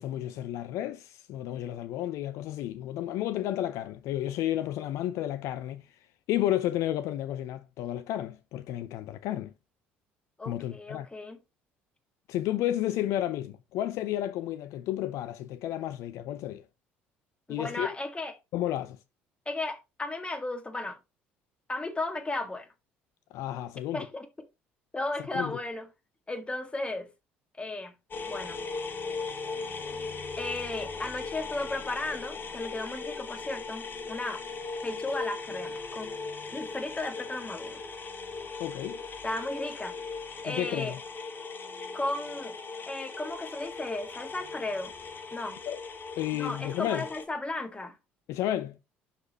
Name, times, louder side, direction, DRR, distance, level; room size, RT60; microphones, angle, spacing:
voice 1, 0.0-6.0 6.3-9.5 10.4-11.1 12.3-16.6 17.5-18.0 18.5-19.0 23.3-24.1 25.2-25.6 38.6-39.0 40.4-41.0 45.7-45.8 46.2-47.1 48.3-48.8, left 13 dB, 65° left, 0.5 m, -32 dB
voice 2, 10.4-11.4 17.5-18.3 19.4-21.0 21.7-22.7 23.9-24.3 24.9-25.9 26.3-27.1 27.5-27.9 28.3-28.6 30.4-34.4 34.8-36.2 36.5-37.8 39.2-40.0 40.4-40.9 41.9-42.6 42.9-44.9 45.3-45.6 46.4-48.0, left 2 dB, 20° left, 1.7 m, -35 dB
sound 1, 28.1-47.3, left 4 dB, 35° left, 1.5 m, -39 dB
11.5 x 4.2 x 2.9 m
hypercardioid pair, 55°, 6 cm